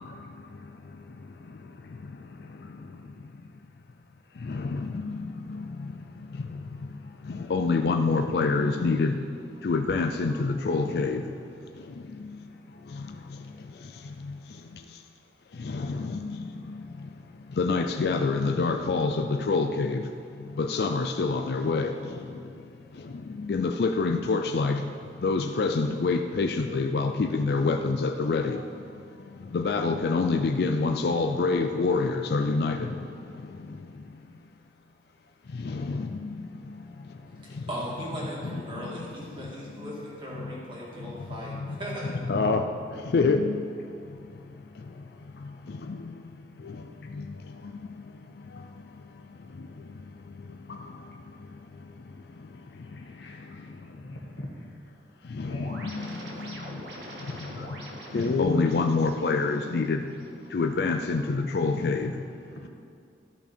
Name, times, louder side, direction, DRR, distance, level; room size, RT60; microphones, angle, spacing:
voice 1, 7.5-9.1 9.6-11.2 17.6-20.0 20.6-21.9 23.5-24.8 25.2-28.6 29.5-32.8 42.3-42.6 43.1-43.4 58.1-60.0 60.5-62.1, left 4 dB, 60° left, 6 dB, 0.4 m, -25 dB
voice 2, 37.4-42.1, right 1 dB, 30° right, -5 dB, 2.1 m, -38 dB
voice 3, 52.5-55.0 55.3-56.0 62.5-62.7, left 1 dB, 80° left, 0 dB, 1.5 m, -46 dB
sound 1, 55.5-60.5, right 1 dB, 80° right, 1.6 m, -44 dB
13.0 x 5.6 x 4.4 m, 2.4 s
head